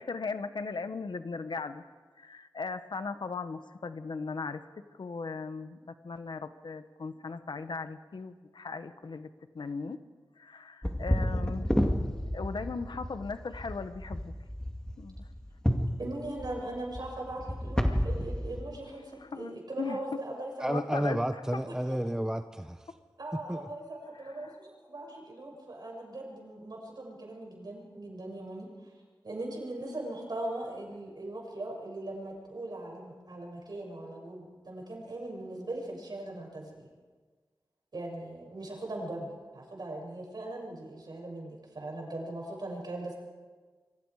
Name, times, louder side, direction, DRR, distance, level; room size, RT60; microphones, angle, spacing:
voice 1, 0.0-1.8 2.2-10.0 10.4-11.8 12.3-14.3 15.0-15.1 19.2-20.2 20.7-21.2 21.5-21.6 24.2-24.5, left 4 dB, 75° left, 1.2 m, -38 dB
sound 1, 10.8-18.6, equal, 10° left, 2.3 m, -31 dB
voice 2, 16.0-20.9 21.6-22.0 23.2-29.0 29.2-36.9 37.9-43.1, right 1 dB, 60° right, 7.0 m, -40 dB
voice 3, 20.6-22.8 23.5-23.6, right 1 dB, 5° right, 0.8 m, -31 dB
27.5 x 24.0 x 4.9 m
wide cardioid pair, 100°, 8 cm